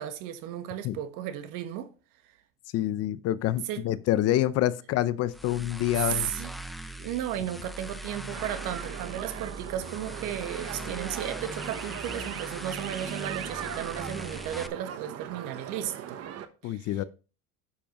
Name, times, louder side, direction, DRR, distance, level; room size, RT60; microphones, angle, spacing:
voice 1, 0.0-1.9 3.7-3.8 6.0-6.5 7.0-16.2 16.6-16.9, right 11 dB, 65° right, 1.4 m, -34 dB
voice 2, 2.7-6.3 16.6-17.0, left 13 dB, 45° left, 0.6 m, -27 dB
sound 1, 5.3-14.7, right 1 dB, ahead, 0.5 m, -40 dB
sound 2, 8.3-16.5, right 10 dB, 45° right, 1.1 m, -39 dB
9.7 x 7.2 x 3.0 m
cardioid pair, 130°, 34 cm